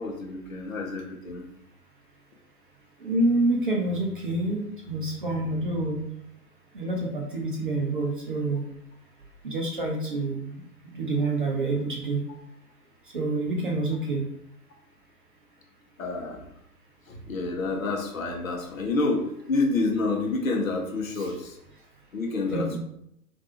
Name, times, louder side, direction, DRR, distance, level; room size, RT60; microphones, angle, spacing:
voice 1, 0.0-1.4 16.0-16.5 17.1-21.6 22.1-22.8, left 3 dB, 55° left, 2 dB, 0.8 m, -28 dB
voice 2, 3.0-6.0 6.7-8.6 9.4-10.6 10.9-12.2 13.1-14.3 21.1-21.4 22.5-22.8, right 2 dB, 35° right, -1 dB, 0.4 m, -27 dB
3.1 x 2.5 x 2.9 m, 0.76 s
figure-of-eight pair, 115°, 48 cm